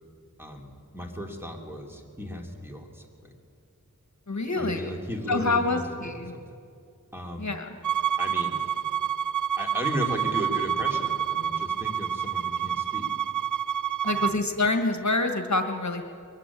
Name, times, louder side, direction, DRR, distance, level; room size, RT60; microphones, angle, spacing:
voice 1, 0.4-3.3 4.6-6.4 7.1-7.5 8.2-8.7 9.6-13.1 14.0-14.4, equal, 5° right, 1 dB, 2.8 m, -36 dB
voice 2, 4.3-4.9 5.3-6.3 7.4-7.8 14.0-16.0, left 2 dB, 55° left, 6 dB, 1.4 m, -26 dB
Bowed string instrument, 7.8-14.4, right 9 dB, 65° right, 0.5 m, -28 dB
22.0 x 14.5 x 9.8 m, 2.5 s
wide cardioid pair, 50°, 33 cm